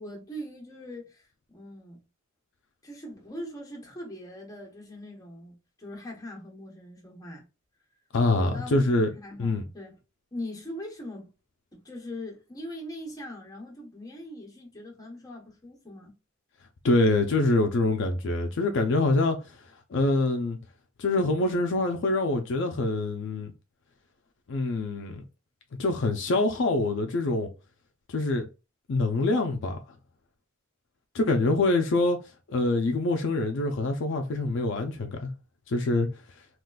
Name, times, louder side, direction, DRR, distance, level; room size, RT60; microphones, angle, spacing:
voice 1, 0.0-2.0 2.8-7.4 8.4-10.0 10.3-11.3 11.7-16.1, left 1 dB, 20° left, 1.0 m, -41 dB
voice 2, 8.1-9.1 9.4-9.6 16.8-19.6 19.9-20.6 21.0-23.5 24.5-25.2 25.8-27.5 28.1-28.5 28.9-29.8 31.1-32.2 32.5-35.3 35.7-36.1, left 2 dB, 60° left, 0.5 m, -25 dB
3.7 x 2.4 x 2.2 m
head